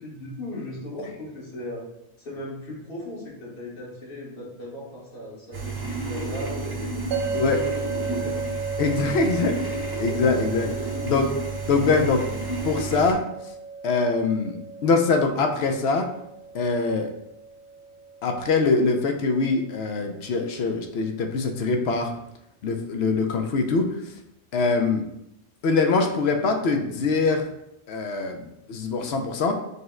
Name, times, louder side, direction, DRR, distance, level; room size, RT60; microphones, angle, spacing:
voice 1, 0.0-1.9 2.2-7.5 7.9-8.4, left 1 dB, 55° left, -5 dB, 1.5 m, -37 dB
sound 1, 5.5-13.1, right 3 dB, 25° right, 0.6 m, -31 dB
sound 2, 7.1-20.2, right 4 dB, 70° right, 0.9 m, -35 dB
voice 2, 7.3-7.6 8.8-10.7 11.0-11.3 11.7-12.3 12.6-13.2 13.8-14.5 14.8-16.1 16.5-17.1 18.2-22.1 22.6-23.9 24.5-25.0 25.6-27.4 27.9-29.5, left 4 dB, 75° left, 5 dB, 0.8 m, -23 dB
5.2 x 2.1 x 3.7 m, 0.80 s
omnidirectional pair, 1.1 m